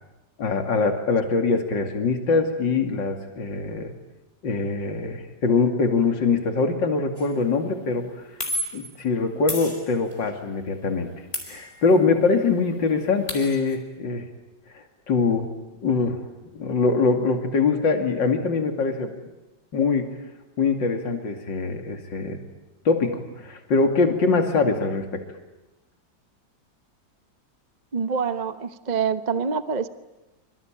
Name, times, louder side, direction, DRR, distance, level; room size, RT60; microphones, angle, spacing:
voice 1, 0.4-3.9 4.4-8.0 8.7-11.1 11.5-14.2 14.7-15.5 15.8-16.2 16.5-19.1 19.7-20.1 20.6-22.4 22.8-25.2, left 4 dB, 75° left, 5 dB, 3.2 m, -23 dB
sound 1, 7.2-7.4 8.4-9.0 9.5-10.3 11.3-12.2 12.5-12.6 12.9-13.8, equal, 30° left, 4.8 m, -33 dB
voice 2, 27.9-29.9, right 6 dB, 30° right, 11 dB, 0.8 m, -26 dB
26.0 x 25.5 x 9.0 m, 1.0 s
omnidirectional pair, 2.0 m